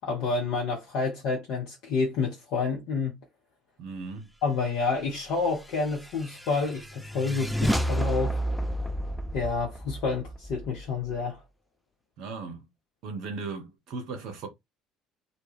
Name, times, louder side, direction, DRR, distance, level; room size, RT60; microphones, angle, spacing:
voice 1, 0.0-3.1 4.4-8.4 9.3-11.4, left 4 dB, 55° left, 0.6 m, -29 dB
voice 2, 3.8-4.3 12.2-12.7 13.0-14.5, right 4 dB, 50° right, 0.7 m, -37 dB
sound 1, 5.6-11.2, right 1 dB, ahead, 0.3 m, -31 dB
2.2 x 2.1 x 3.1 m
figure-of-eight pair, 60°, 0 cm